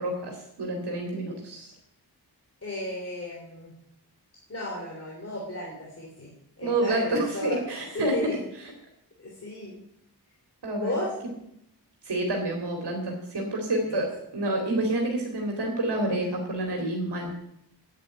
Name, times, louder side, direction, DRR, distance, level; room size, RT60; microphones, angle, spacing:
voice 1, 0.0-1.7 6.6-8.4 10.6-11.0 12.0-17.3, right 1 dB, 80° right, 1 dB, 2.6 m, -28 dB
voice 2, 2.6-3.7 4.5-6.3 6.6-7.6 7.9-8.4 9.2-9.8 10.7-11.1 13.8-14.0, left 1 dB, 40° left, -3 dB, 3.2 m, -34 dB
9.1 x 8.3 x 8.9 m, 0.78 s
wide cardioid pair, 105°, 40 cm